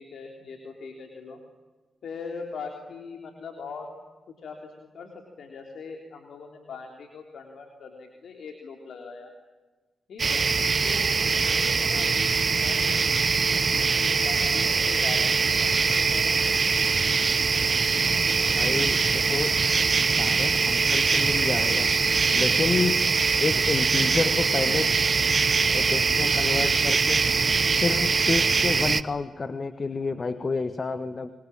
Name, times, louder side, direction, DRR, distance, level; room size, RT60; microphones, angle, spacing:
voice 1, 0.0-1.4 2.0-3.9 4.4-9.3 10.1-10.4 10.8-16.6, left 5 dB, 75° left, 3 dB, 3.5 m, -41 dB
sound 1, 10.2-29.0, right 4 dB, 50° right, 1.2 m, -23 dB
voice 2, 18.5-19.6 20.2-22.0 22.3-23.0 23.4-24.9 25.7-27.3 27.8-31.3, left 4 dB, 45° left, 11 dB, 1.6 m, -29 dB
25.5 x 25.0 x 8.8 m, 1.3 s
supercardioid pair, 50°, 0 cm